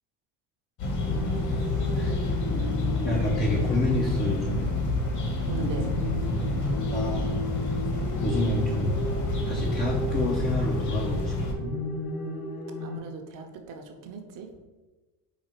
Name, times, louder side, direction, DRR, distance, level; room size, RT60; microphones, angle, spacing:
sound 1, 0.8-11.5, left 2 dB, 45° left, 1.2 m, -28 dB
sound 2, 1.0-13.0, left 1 dB, 70° left, 0.9 m, -34 dB
voice 1, 2.0-2.4 3.0-4.8 6.9-7.4 7.9-9.0 9.5-11.6, left 2 dB, 20° left, -1 dB, 0.5 m, -29 dB
voice 2, 5.4-5.9 12.8-14.6, right 3 dB, 45° right, 4 dB, 0.8 m, -38 dB
5.0 x 2.4 x 4.3 m, 1.2 s
supercardioid pair, 120°, 43 cm